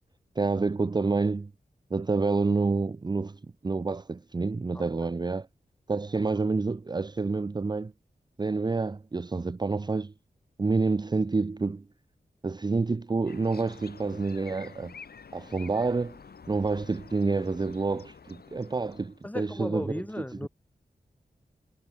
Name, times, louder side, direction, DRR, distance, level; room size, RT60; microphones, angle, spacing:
voice 1, 0.4-1.5 1.9-5.5 5.9-7.9 8.4-10.1 10.6-11.8 12.4-14.9 15.3-16.2 16.5-19.8, right 3 dB, 25° right, 0.6 m, -28 dB
sound 1, 13.3-19.3, left 5 dB, 80° left, 4.9 m, -49 dB
voice 2, 19.2-20.5, left 1 dB, 10° left, 3.4 m, -35 dB
wide cardioid pair, 110°, 16 cm